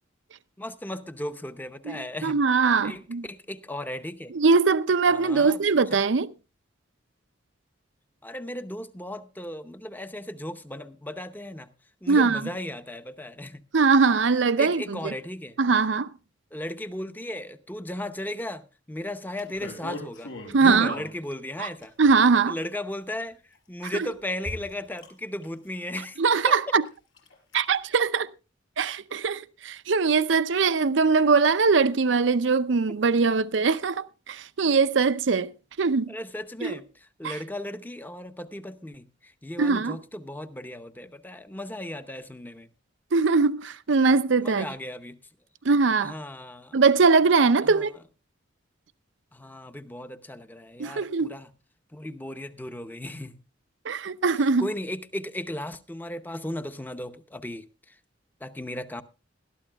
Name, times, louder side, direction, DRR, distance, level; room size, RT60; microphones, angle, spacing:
voice 1, 0.6-2.4 2.8-4.3 5.1-5.6 8.2-11.7 12.0-13.6 14.6-15.6 16.5-20.3 20.6-21.9 22.5-23.4 23.7-26.2 26.5-26.6 36.1-42.7 44.4-45.2 46.0-46.8 47.7-47.9 49.3-51.5 51.9-53.4 54.6-58.0 58.4-59.0, left 1 dB, 10° left, 0.7 m, -36 dB
voice 2, 1.9-3.3 4.3-6.3 12.1-12.5 13.7-15.1 15.6-16.1 20.5-20.9 21.6-21.7 22.0-22.6 23.9-24.1 26.2-26.8 27.5-28.3 28.8-35.5 35.8-36.1 36.6-36.8 37.2-37.4 39.6-40.0 43.1-44.7 45.6-46.1 46.7-47.9 50.8-51.3 53.8-54.7, right 4 dB, 65° right, 0.6 m, -21 dB
sound 1, 19.4-21.1 21.8-22.6 23.5-23.6 24.4-25.1 25.4-25.7 26.0-26.1 26.5-26.9 27.1-27.6 28.0-28.1, left 2 dB, 90° left, 4.7 m, -40 dB
21.0 x 12.5 x 2.3 m
head